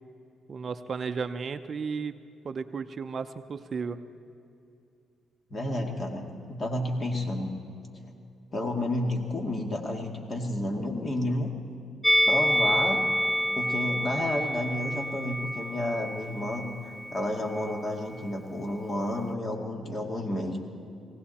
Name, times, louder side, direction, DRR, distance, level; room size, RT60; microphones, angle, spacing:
voice 1, 0.5-2.1 2.4-4.0, right 5 dB, 45° right, 10 dB, 0.6 m, -34 dB
voice 2, 5.5-7.5 8.5-11.5 12.3-13.0 13.5-16.7 17.1-20.6, left 1 dB, 35° left, 2 dB, 2.3 m, -31 dB
Musical instrument, 12.0-17.3 17.5-17.7, equal, 5° left, 0.6 m, -28 dB
19.5 x 17.0 x 4.2 m, 2.6 s
cardioid pair, 90°, 0 cm